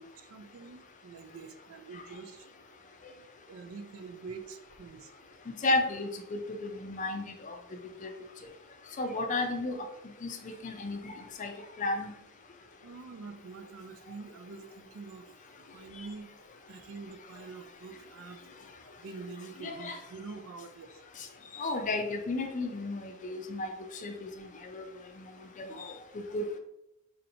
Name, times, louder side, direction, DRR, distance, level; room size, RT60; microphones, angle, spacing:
voice 1, 0.0-2.5 3.5-5.1 12.8-15.3 15.7-16.3 16.7-18.4 19.0-20.9, right 4 dB, 65° right, 8 dB, 0.4 m, -45 dB
voice 2, 5.5-7.6 8.0-8.1 9.0-9.8 10.2-11.5 11.8-12.1 19.6-20.0 21.5-23.7 24.0-24.8 25.6-25.9 26.3-26.5, left 2 dB, 35° left, 5 dB, 0.5 m, -33 dB
4.2 x 2.7 x 2.7 m, 0.82 s
head